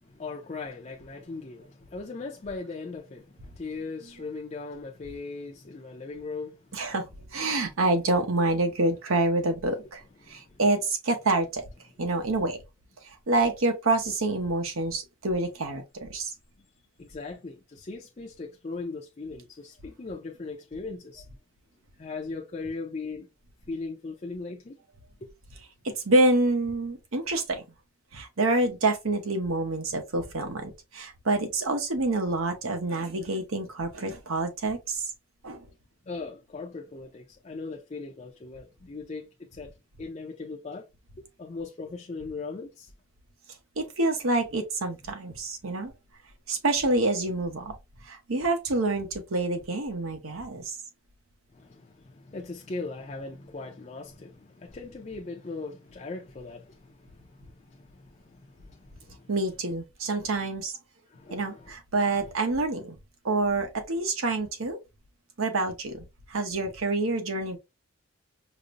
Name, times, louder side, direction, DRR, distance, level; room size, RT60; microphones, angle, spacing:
voice 1, 0.0-6.9 9.8-9.9 10.2-10.6 16.6-16.7 17.0-21.2 22.0-23.3 23.7-24.8 25.2-25.3 36.0-40.9 41.2-42.9 51.5-59.3 61.1-61.7 62.0-62.2, left 3 dB, 35° left, 0.5 m, -39 dB
voice 2, 6.7-11.6 12.0-12.6 13.0-16.3 25.8-27.6 28.1-35.0 35.4-35.7 43.8-45.9 46.5-47.7 48.0-50.8 59.3-60.8 61.3-63.0 63.2-64.8 65.4-67.6, right 2 dB, 80° right, 0.9 m, -27 dB
5.0 x 2.0 x 2.5 m
head